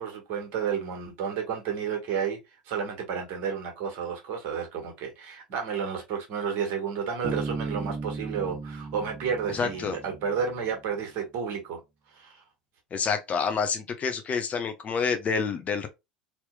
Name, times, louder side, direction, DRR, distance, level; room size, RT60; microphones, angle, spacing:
voice 1, 0.0-2.4 2.7-11.8 12.1-12.4, right 7 dB, 55° right, 1.4 m, -31 dB
Bass guitar, 7.2-10.7, right 4 dB, 20° right, 0.5 m, -36 dB
voice 2, 9.5-10.0 12.9-15.9, left 5 dB, 35° left, 0.7 m, -28 dB
3.2 x 2.9 x 2.3 m
hypercardioid pair, 75°, 4 cm